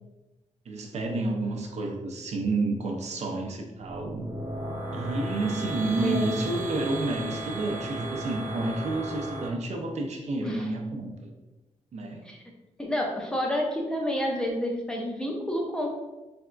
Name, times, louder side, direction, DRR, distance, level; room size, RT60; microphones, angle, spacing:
voice 1, 0.7-4.3 4.9-11.3 11.9-12.3, right 2 dB, 65° right, 2 dB, 0.6 m, -30 dB
sound 1, 3.8-9.5, right 2 dB, 85° right, 1.0 m, -35 dB
voice 2, 6.0-6.3 10.4-10.7 12.3-12.4 12.8-16.0, equal, 5° left, -1 dB, 0.6 m, -29 dB
4.1 x 3.4 x 2.5 m, 1.1 s
wide cardioid pair, 180°, 13 cm